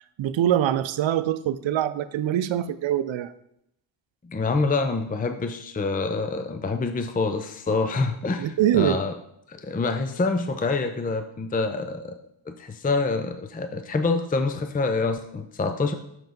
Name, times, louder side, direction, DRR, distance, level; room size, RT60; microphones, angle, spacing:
voice 1, 0.2-3.3 8.4-9.0, right 11 dB, 75° right, 15 dB, 0.6 m, -24 dB
voice 2, 4.2-9.1 9.5-12.2 12.5-15.9, left 3 dB, 20° left, 7 dB, 0.5 m, -26 dB
6.5 x 5.7 x 5.2 m, 0.78 s
cardioid pair, 85°, 46 cm